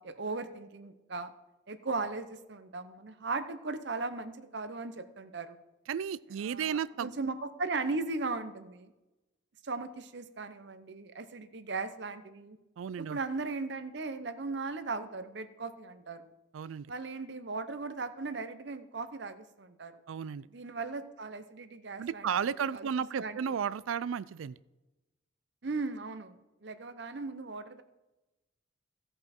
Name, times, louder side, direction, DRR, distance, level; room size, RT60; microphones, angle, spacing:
voice 1, 0.0-1.3 1.7-5.6 6.4-8.9 9.6-12.6 13.0-16.3 16.9-19.9 20.5-22.3 22.7-22.9 23.1-23.6 25.6-27.8, right 3 dB, 60° right, 10 dB, 0.8 m, -37 dB
voice 2, 5.9-7.3 12.8-13.2 16.5-16.9 20.1-20.5 22.0-24.6, right 7 dB, 85° right, 19 dB, 0.4 m, -34 dB
16.0 x 5.5 x 4.4 m, 1.0 s
head